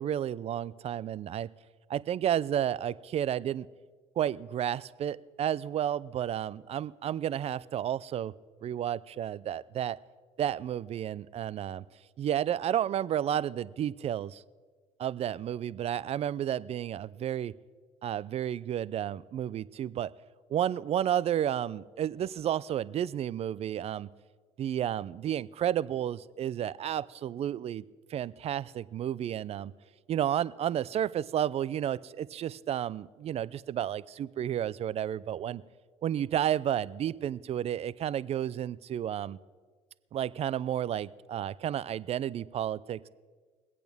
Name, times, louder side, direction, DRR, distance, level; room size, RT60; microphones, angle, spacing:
voice 1, 0.0-1.5 1.9-3.7 4.2-8.3 8.6-10.0 10.4-11.8 12.2-14.4 15.0-17.5 18.0-20.1 20.5-24.1 24.6-27.8 28.1-29.7 30.1-35.6 36.0-39.4 40.1-43.1, right 10 dB, 45° right, 19 dB, 0.4 m, -31 dB
23.5 x 8.5 x 3.5 m, 1.4 s
supercardioid pair, 90°, 14 cm